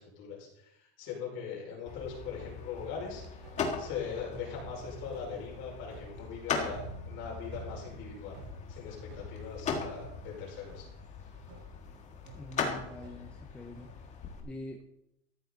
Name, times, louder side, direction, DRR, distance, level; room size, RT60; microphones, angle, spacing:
voice 1, 0.0-3.4 3.8-8.4 8.7-10.9, left 6 dB, 35° left, -2 dB, 5.2 m, -41 dB
sound 1, 1.9-14.4, left 5 dB, 20° left, 1.6 m, -40 dB
sound 2, 2.2-14.2, right 4 dB, 60° right, 5.8 m, -52 dB
voice 2, 12.3-14.1 14.4-14.8, left 1 dB, 5° left, 1 dB, 0.6 m, -45 dB
13.5 x 10.5 x 4.0 m, 0.79 s
supercardioid pair, 165°, 32 cm